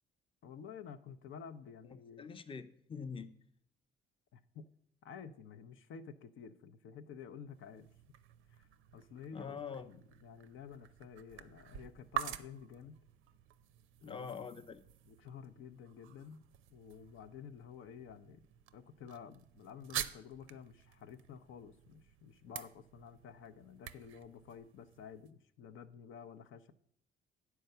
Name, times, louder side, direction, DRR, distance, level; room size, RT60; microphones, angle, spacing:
voice 1, 0.4-2.3 4.3-4.7 5.0-7.9 8.5-8.7 8.9-13.0 14.0-14.5 15.1-16.4 16.7-18.5 18.7-26.7, left 7 dB, 75° left, 9 dB, 0.6 m, -51 dB
voice 2, 2.2-3.3 9.3-9.9 14.0-14.8, left 6 dB, 25° left, 10 dB, 0.6 m, -44 dB
sound 1, 7.5-25.3, right 11 dB, 90° right, 0.5 m, -48 dB
9.2 x 4.6 x 6.6 m, 0.68 s
cardioid pair, 90°, 20 cm